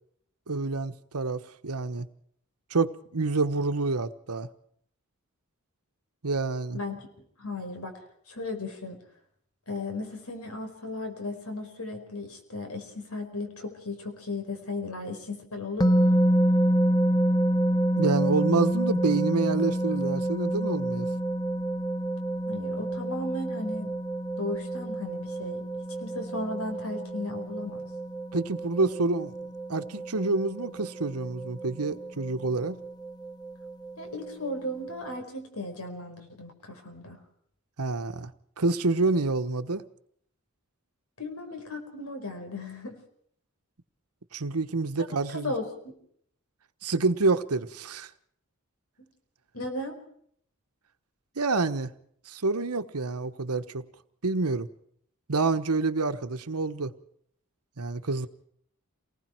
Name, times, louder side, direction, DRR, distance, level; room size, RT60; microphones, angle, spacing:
voice 1, 0.5-2.1 2.7-4.5 6.2-6.8 18.0-21.1 28.3-29.3 29.7-32.8 37.8-38.3 38.6-39.8 44.3-45.5 46.8-48.1 51.4-51.9 52.3-53.8 54.2-54.7 55.3-56.9 57.8-58.3, right 3 dB, 85° right, 1.2 m, -27 dB
voice 2, 6.7-8.0 8.3-9.0 9.7-16.2 22.5-23.9 24.4-25.7 26.0-27.8 34.0-37.2 41.2-43.0 45.1-45.9 49.5-50.0, left 2 dB, 80° left, 4.8 m, -36 dB
sound 1, 15.8-35.2, right 1 dB, 20° left, 1.1 m, -28 dB
28.5 x 20.0 x 4.6 m
head